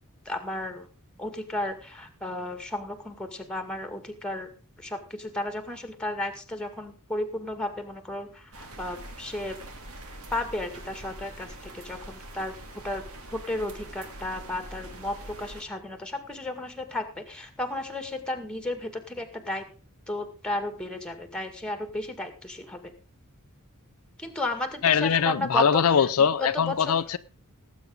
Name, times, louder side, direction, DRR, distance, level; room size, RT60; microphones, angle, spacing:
voice 1, 0.3-0.9 1.2-4.5 4.8-9.6 10.3-13.0 13.3-19.6 20.1-22.9 24.2-25.8 26.4-27.0, left 1 dB, 5° left, 2.0 m, -33 dB
sound 1, 8.5-15.6, right 1 dB, 70° right, 2.2 m, -43 dB
voice 2, 24.8-27.2, left 7 dB, 70° left, 0.5 m, -22 dB
18.5 x 8.3 x 3.8 m
head